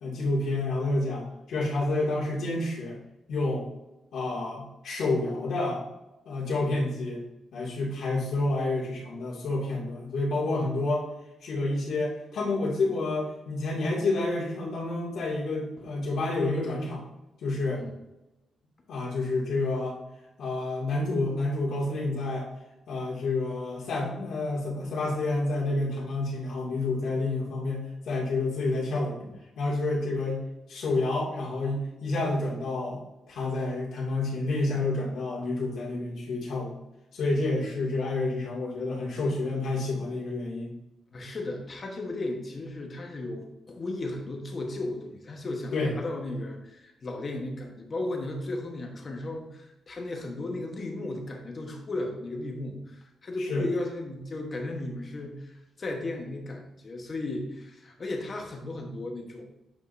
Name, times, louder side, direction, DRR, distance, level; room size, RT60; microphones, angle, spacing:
voice 1, 0.0-3.0 3.3-3.7 4.1-5.8 6.3-7.2 7.5-11.1 11.4-17.0 17.4-17.9 18.9-20.0 20.4-22.5 22.9-30.4 30.7-33.0 33.3-36.8 37.1-40.7 45.7-45.9 53.5-53.6, left 2 dB, 70° left, -4 dB, 2.3 m, -29 dB
voice 2, 41.1-59.5, left 2 dB, 35° left, 2 dB, 1.2 m, -35 dB
8.4 x 5.0 x 2.7 m, 0.96 s
cardioid pair, 135°, 0 cm